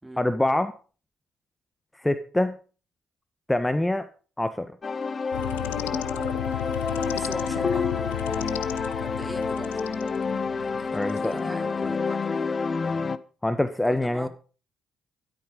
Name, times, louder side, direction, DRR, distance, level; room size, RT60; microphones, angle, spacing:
voice 1, 0.2-0.7 2.0-2.6 3.5-4.1 4.4-4.7 10.9-11.5 13.4-14.3, left 1 dB, 10° left, 1.5 m, -25 dB
sound 1, 4.8-13.2, left 4 dB, 40° left, 1.2 m, -28 dB
sound 2, 5.3-11.3, left 16 dB, 80° left, 0.8 m, -34 dB
voice 2, 7.1-8.0 9.0-10.1 10.6-12.7 13.8-14.3, right 1 dB, 15° right, 3.5 m, -41 dB
14.5 x 13.0 x 5.4 m
hypercardioid pair, 45°, 0 cm